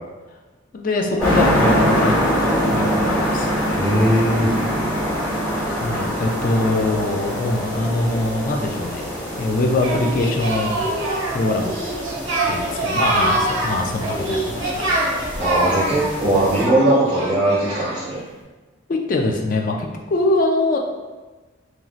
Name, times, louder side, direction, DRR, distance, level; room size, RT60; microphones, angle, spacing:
voice 1, 0.7-3.6 5.8-10.8 11.3-11.8 12.5-14.9 18.9-20.8, left 2 dB, 45° left, 2 dB, 0.3 m, -23 dB
sound 1, 1.2-16.6, equal, 10° left, 1.1 m, -24 dB
voice 2, 3.7-4.5 15.4-18.2, right 1 dB, 25° right, -12 dB, 0.8 m, -19 dB
Singing, 9.8-18.2, right 2 dB, 75° right, 0.7 m, -25 dB
3.0 x 2.6 x 2.4 m, 1.2 s
head